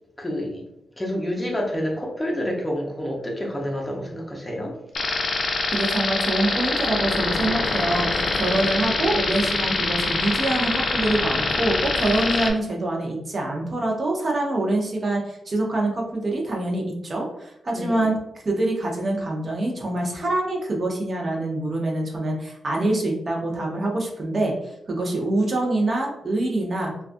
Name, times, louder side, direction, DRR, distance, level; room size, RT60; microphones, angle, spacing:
voice 1, 0.2-0.6 1.0-4.7 17.7-18.1 25.0-25.2, equal, 15° left, -1 dB, 0.6 m, -28 dB
sound 1, 4.9-12.5, left 3 dB, 60° left, 0.4 m, -24 dB
voice 2, 5.7-18.2 18.4-26.9, right 2 dB, 45° right, 0 dB, 0.6 m, -25 dB
2.3 x 2.3 x 2.5 m, 0.82 s
cardioid pair, 90°, 0 cm